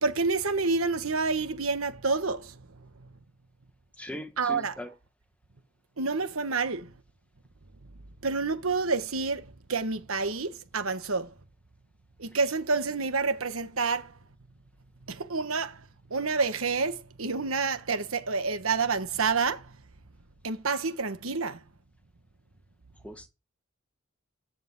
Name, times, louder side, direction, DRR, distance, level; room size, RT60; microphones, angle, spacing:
voice 1, 0.0-3.1 4.4-4.8 6.0-6.9 8.2-11.3 12.2-14.1 15.1-19.8 20.4-21.6, right 4 dB, 85° right, 1.4 m, -29 dB
voice 2, 4.0-4.9 23.0-23.3, left 1 dB, 5° left, 1.2 m, -40 dB
13.5 x 5.1 x 8.2 m
head